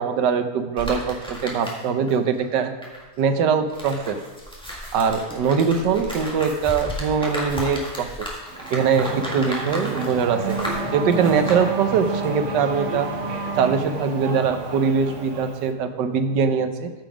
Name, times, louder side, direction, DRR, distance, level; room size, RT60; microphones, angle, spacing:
voice 1, 0.0-2.7 3.2-4.2 4.9-8.3 8.7-9.0 9.3-10.6 10.9-13.1 13.6-16.9, right 6 dB, 75° right, 8 dB, 1.4 m, -22 dB
sound 1, 0.8-2.1 2.4-11.6, equal, 5° left, 1.6 m, -34 dB
Race car auto racing / Accelerating revving vroom, 8.5-15.7, right 3 dB, 50° right, 1.2 m, -30 dB
13.5 x 5.3 x 4.9 m, 1.2 s
omnidirectional pair, 1.9 m